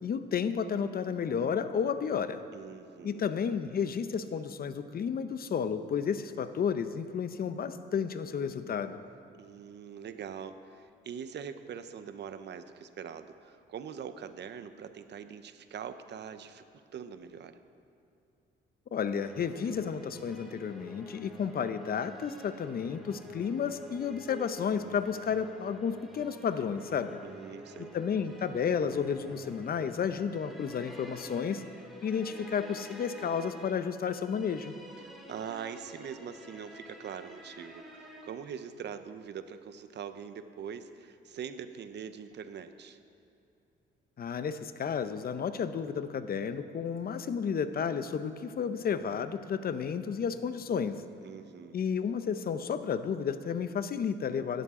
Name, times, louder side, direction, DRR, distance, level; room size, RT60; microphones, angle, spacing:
voice 1, 0.0-2.4 3.0-9.0 18.9-27.2 27.8-31.6 32.0-34.7 44.2-51.0 51.7-54.6, left 7 dB, 50° left, 11 dB, 0.8 m, -32 dB
voice 2, 2.5-3.2 9.4-16.6 16.9-17.6 27.2-27.9 35.3-43.0 51.2-51.9, right 7 dB, 60° right, 10 dB, 0.8 m, -43 dB
sound 1, 19.1-38.3, equal, ahead, 2.4 m, -49 dB
17.0 x 12.5 x 3.8 m, 2.7 s
cardioid pair, 90°, 20 cm